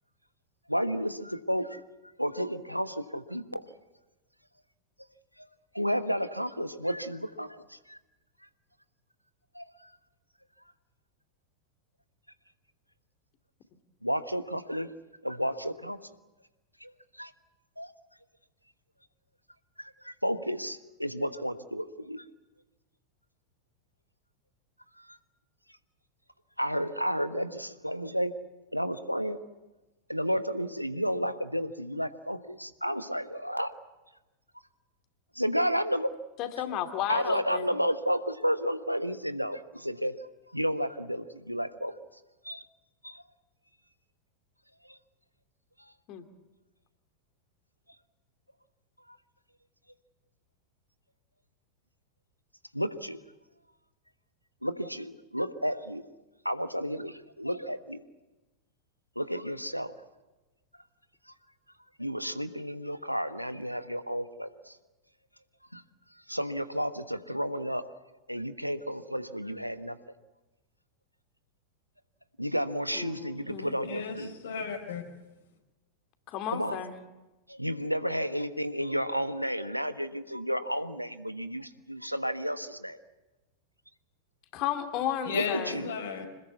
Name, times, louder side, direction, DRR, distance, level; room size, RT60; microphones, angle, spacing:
voice 1, 0.7-1.8 2.2-3.6 5.4-5.5 5.7-8.0 9.5-9.6 14.0-14.9 15.2-16.0 16.8-16.9 17.2-17.3 17.8-17.9 20.0-22.2 25.0-25.2 26.6-28.3 28.7-29.4 30.1-33.7 35.3-36.1 37.1-40.1 40.5-41.9 42.4-42.6 43.0-43.2 44.9-45.0 52.7-53.2 54.6-56.0 56.4-58.0 59.1-59.9 62.0-64.7 65.7-65.8 66.3-67.8 68.3-70.0 72.4-74.3 76.5-76.8 77.5-83.0 85.3-85.9, equal, 90° right, 1.2 m, -32 dB
voice 2, 36.4-37.7 46.1-46.3 72.9-73.7 76.3-77.0 84.5-85.8, left 10 dB, 40° left, 2.7 m, -33 dB
voice 3, 73.8-75.0 85.2-86.3, left 6 dB, 60° left, 4.5 m, -35 dB
26.0 x 20.0 x 8.3 m
figure-of-eight pair, 90°, 0 cm